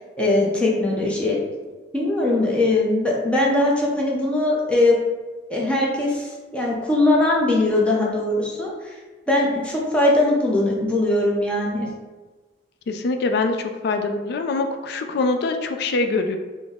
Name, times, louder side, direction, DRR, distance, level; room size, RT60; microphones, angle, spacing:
voice 1, 0.2-1.4 1.9-5.0 5.5-9.0 9.3-11.9, left 2 dB, 5° left, -4 dB, 0.6 m, -20 dB
voice 2, 12.9-16.4, left 3 dB, 60° left, 6 dB, 0.3 m, -24 dB
3.9 x 2.0 x 3.5 m, 1.3 s
head